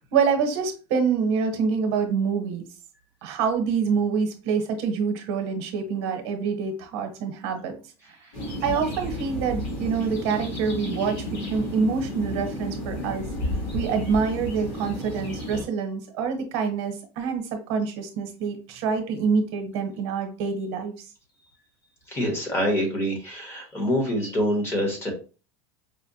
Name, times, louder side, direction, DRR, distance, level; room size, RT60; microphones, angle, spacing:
voice 1, 0.1-2.7 3.2-7.7 8.6-11.1 11.5-13.2 13.7-17.4 17.7-20.9, right 5 dB, 65° right, 5 dB, 0.9 m, -26 dB
sound 1, 8.3-15.6, equal, 45° left, 1.8 m, -32 dB
voice 2, 22.1-25.1, equal, 15° left, 1 dB, 1.0 m, -25 dB
5.0 x 2.1 x 2.7 m, 0.34 s
cardioid pair, 165°, 14 cm